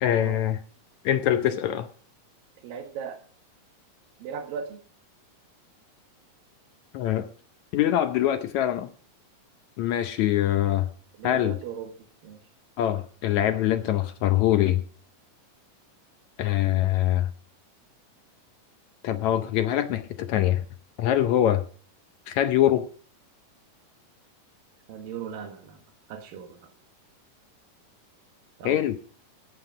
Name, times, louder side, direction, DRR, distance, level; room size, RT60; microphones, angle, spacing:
voice 1, 0.0-0.6 1.1-1.9 6.9-7.3 7.7-8.9 9.8-10.9 11.2-11.6 12.8-14.8 16.4-17.3 19.0-20.6 21.0-21.6 22.3-22.9 28.7-29.0, left 12 dB, 75° left, 10 dB, 1.8 m, -23 dB
voice 2, 2.6-3.2 4.2-4.8 11.2-11.9 12.2-12.4 24.9-25.8 26.1-26.6 28.6-28.8, right 7 dB, 85° right, 5 dB, 3.3 m, -37 dB
17.0 x 8.0 x 4.9 m, 0.43 s
omnidirectional pair, 3.9 m